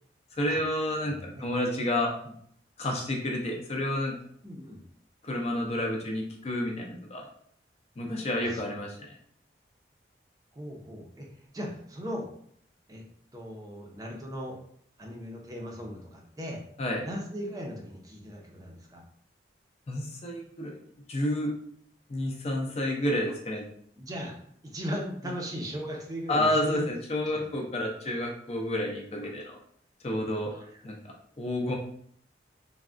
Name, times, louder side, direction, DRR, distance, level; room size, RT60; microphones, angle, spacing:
voice 1, 0.4-2.3 2.8-4.1 5.2-7.2 8.0-9.0 16.8-17.1 19.9-20.8 21.1-21.5 22.1-23.7 26.3-29.6 30.0-30.5 30.8-31.0 31.4-31.8, left 1 dB, 35° left, 0 dB, 0.4 m, -30 dB
voice 2, 1.0-1.4 4.4-4.8 8.4-8.8 10.5-11.3 11.5-12.3 12.9-13.0 13.3-14.6 15.0-16.6 17.0-19.0 24.0-24.4 24.6-26.8 27.3-27.5 30.5-30.7, equal, 20° right, -1 dB, 0.5 m, -38 dB
3.3 x 2.1 x 2.4 m, 0.65 s
head